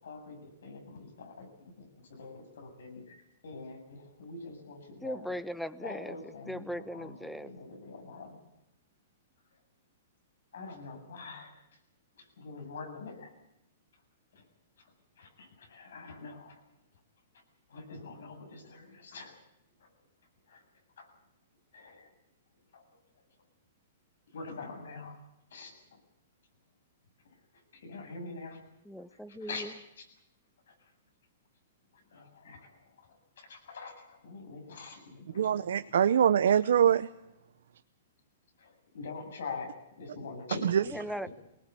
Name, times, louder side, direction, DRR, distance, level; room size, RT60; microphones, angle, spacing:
voice 1, 0.0-1.5 1.8-5.2 5.8-7.1 7.4-8.3 10.5-11.6 12.2-13.3 14.3-14.4 15.2-16.6 17.7-19.4 19.8-19.9 20.5-20.6 21.0-21.1 21.7-22.1 22.7-22.8 24.3-25.2 25.5-25.7 27.7-28.6 29.5-29.7 30.7-30.8 32.1-35.6 35.9-36.0 38.6-41.0, left 4 dB, 80° left, 4 dB, 7.6 m, -45 dB
voice 2, 5.0-7.5 28.8-29.7 40.8-41.3, equal, ahead, 15 dB, 1.0 m, -39 dB
voice 3, 35.3-37.1 40.6-40.8, right 9 dB, 75° right, 11 dB, 0.7 m, -24 dB
21.5 x 19.5 x 8.4 m, 0.87 s
hypercardioid pair, 135°, 0 cm